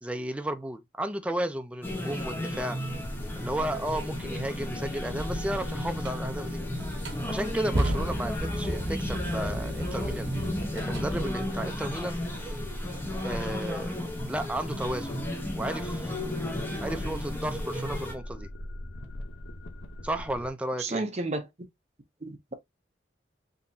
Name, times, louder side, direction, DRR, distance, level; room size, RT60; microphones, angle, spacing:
voice 1, 0.0-2.8 3.4-6.6 7.3-10.3 10.7-12.2 13.2-14.0 14.3-15.2 15.6-16.3 16.8-18.5 20.0-21.0, right 1 dB, 5° right, 0.4 m, -33 dB
sound 1, 1.8-18.1, left 1 dB, 10° left, 0.8 m, -34 dB
sound 2, 3.0-20.5, left 1 dB, 80° left, 0.7 m, -40 dB
sound 3, 6.0-6.2 6.8-11.1, right 1 dB, 75° right, 1.0 m, -33 dB
voice 2, 20.8-21.5 22.2-22.5, right 2 dB, 40° right, 0.7 m, -32 dB
3.7 x 2.9 x 2.6 m
head